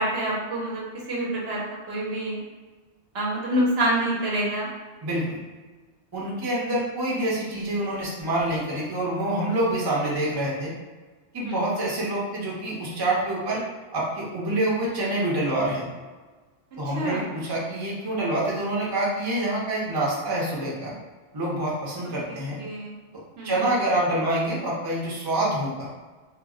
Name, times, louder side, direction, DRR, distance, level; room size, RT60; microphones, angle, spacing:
voice 1, 0.0-2.4 3.1-4.7 11.4-11.9 16.9-17.2 22.3-23.0 23.4-23.7, right 1 dB, 65° right, -4 dB, 0.8 m, -27 dB
voice 2, 5.0-5.4 6.1-10.7 11.3-13.6 13.9-15.8 16.8-20.9 21.3-22.6 23.1-25.9, right 1 dB, 30° right, -5 dB, 0.5 m, -26 dB
2.1 x 2.0 x 3.6 m, 1.3 s
omnidirectional pair, 1.3 m